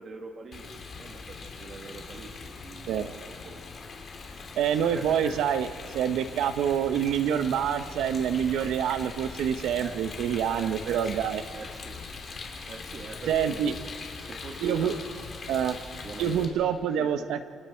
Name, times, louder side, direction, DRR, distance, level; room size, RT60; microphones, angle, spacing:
voice 1, 0.0-3.9 4.6-5.5 9.8-10.0 10.5-12.0 12.7-14.0 14.3-15.7 16.0-17.3, right 3 dB, 45° right, 3 dB, 2.3 m, -43 dB
Rain, 0.5-16.5, left 4 dB, 45° left, 3.5 m, -41 dB
voice 2, 4.6-5.7 5.9-11.4 13.3-13.7 14.6-14.9 15.5-15.8 16.2-17.5, right 9 dB, 85° right, 10 dB, 1.0 m, -26 dB
29.0 x 25.5 x 4.6 m, 2.3 s
cardioid pair, 115°, 0 cm